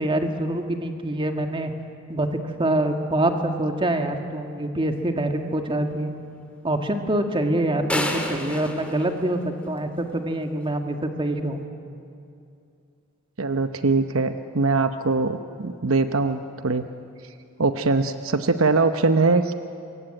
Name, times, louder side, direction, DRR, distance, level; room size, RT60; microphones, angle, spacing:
voice 1, 0.0-1.7 2.1-2.3 2.6-6.1 6.6-11.6, right 1 dB, 25° right, 5 dB, 1.9 m, -25 dB
sound 1, 7.9-10.0, left 1 dB, 5° left, 2.3 m, -29 dB
voice 2, 13.4-16.9 17.6-19.5, right 3 dB, 65° right, 8 dB, 0.9 m, -22 dB
27.0 x 23.5 x 9.1 m, 2.5 s
head